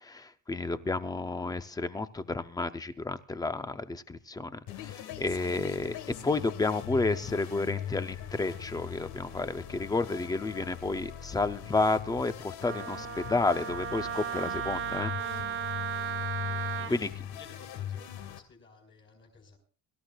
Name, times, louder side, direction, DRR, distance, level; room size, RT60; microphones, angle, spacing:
voice 1, 0.0-6.0 6.2-15.1, left 3 dB, 10° left, 0.5 m, -31 dB
sound 1, 4.7-18.4, left 10 dB, 75° left, 1.6 m, -40 dB
Wind instrument woodwind instrument, 12.6-16.9, right 9 dB, 30° right, 0.6 m, -35 dB
voice 2, 16.1-19.6, left 3 dB, 30° left, 4.3 m, -53 dB
23.5 x 13.5 x 2.3 m
cardioid pair, 180°, 40 cm